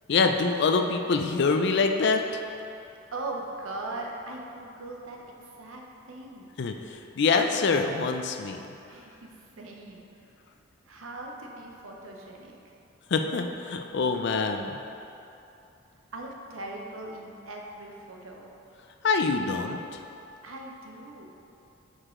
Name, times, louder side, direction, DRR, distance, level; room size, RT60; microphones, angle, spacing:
voice 1, 0.1-2.2 6.6-6.7 7.2-8.6 13.1-14.8 19.0-19.8, left 4 dB, 55° left, 5 dB, 0.4 m, -25 dB
voice 2, 2.8-6.5 8.9-10.1 10.9-12.7 16.1-18.5 20.4-21.3, right 2 dB, 80° right, 0 dB, 0.8 m, -40 dB
6.3 x 4.9 x 3.7 m, 2.7 s
head